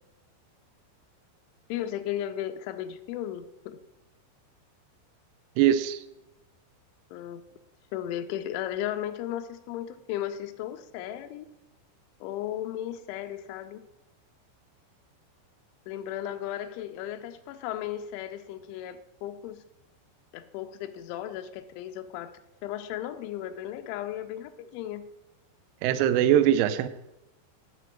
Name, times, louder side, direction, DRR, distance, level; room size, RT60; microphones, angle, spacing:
voice 1, 1.7-3.8 7.1-7.4 7.9-11.5 12.2-13.8 15.9-19.6 20.3-22.3 22.6-25.0, left 11 dB, 85° left, 3.1 m, -35 dB
voice 2, 5.6-6.0 25.8-26.9, right 11 dB, 90° right, 2.2 m, -22 dB
11.5 x 4.5 x 7.5 m
omnidirectional pair, 5.3 m